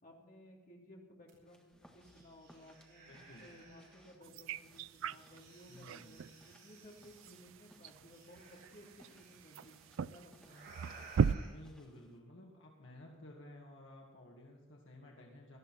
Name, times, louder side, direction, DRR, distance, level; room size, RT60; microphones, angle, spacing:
voice 1, 0.0-3.1 3.4-10.6, equal, 45° left, -2 dB, 3.0 m, -58 dB
sound 1, 1.3-1.4 1.7-4.1 4.8-7.2 8.1-9.6 10.4-11.5, right 3 dB, 55° right, 6.9 m, -58 dB
sound 2, 1.4-12.2, equal, 5° left, 1.6 m, -66 dB
voice 2, 3.1-3.5 5.7-6.2 11.4-15.6, left 1 dB, 65° left, -1 dB, 2.1 m, -54 dB
sound 3, 4.2-11.3, right 6 dB, 80° right, 0.4 m, -39 dB
18.5 x 13.0 x 4.4 m, 1.1 s
head